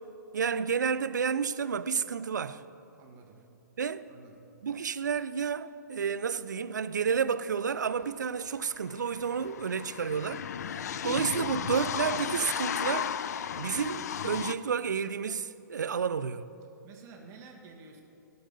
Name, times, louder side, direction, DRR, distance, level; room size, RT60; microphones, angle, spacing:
voice 1, 0.3-2.6 3.8-4.1 4.6-10.4 11.0-13.1 13.6-16.5, right 6 dB, 70° right, 0.4 m, -30 dB
voice 2, 2.9-3.5 4.1-4.5 16.8-18.0, right 4 dB, 30° right, 1.4 m, -51 dB
sound 1, 8.0-8.1 8.3-14.5, left 8 dB, 60° left, 0.4 m, -34 dB
13.0 x 5.4 x 6.5 m
figure-of-eight pair, 110°, 10 cm